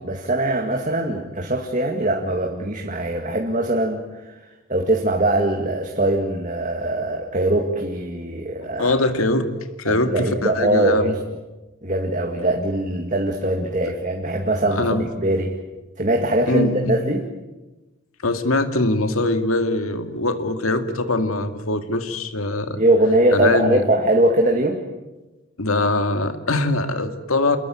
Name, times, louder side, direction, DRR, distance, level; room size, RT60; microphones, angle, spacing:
voice 1, 0.0-4.4 4.7-8.9 9.9-11.2 11.8-15.6 16.0-17.3 22.8-24.8, right 1 dB, 35° right, 3 dB, 2.1 m, -21 dB
voice 2, 8.6-9.5 9.8-11.1 14.7-15.1 16.5-17.0 18.2-22.8 23.3-23.8 25.6-27.6, left 2 dB, 85° left, 8 dB, 2.3 m, -22 dB
28.5 x 21.5 x 9.4 m, 1.1 s
head